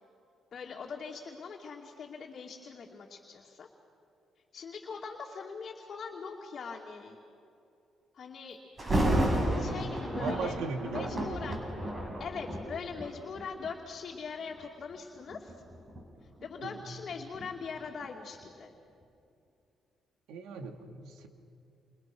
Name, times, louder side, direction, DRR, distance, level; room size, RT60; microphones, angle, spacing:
voice 1, 0.5-3.7 4.5-7.2 8.1-8.6 9.6-10.6 10.8-11.6 12.2-15.6 16.4-18.7, left 5 dB, 50° left, -1 dB, 2.7 m, -41 dB
Thunder, 8.8-13.8 14.4-14.6 15.3-18.1 18.4-18.5, right 1 dB, 30° right, 6.9 m, -32 dB
voice 2, 9.8-11.6 16.6-17.0 20.3-21.3, right 4 dB, 90° right, 5 dB, 2.5 m, -39 dB
29.5 x 29.0 x 6.4 m, 2.6 s
cardioid pair, 90°, 0 cm